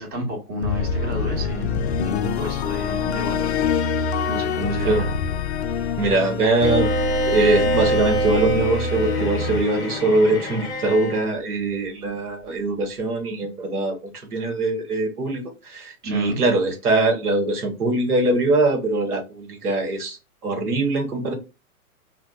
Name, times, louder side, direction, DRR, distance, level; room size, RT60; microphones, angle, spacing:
voice 1, 0.0-3.9 4.3-5.1 16.0-16.4, equal, 20° right, 1.1 m, -31 dB
sound 1, 0.6-10.8, left 5 dB, 50° left, 0.4 m, -25 dB
voice 2, 6.0-6.9 7.2-20.2 20.4-21.3, right 2 dB, 75° right, 1.2 m, -22 dB
Bowed string instrument, 6.6-11.3, right 2 dB, 10° left, 0.7 m, -26 dB
4.6 x 2.2 x 2.3 m
figure-of-eight pair, 115°, 45 cm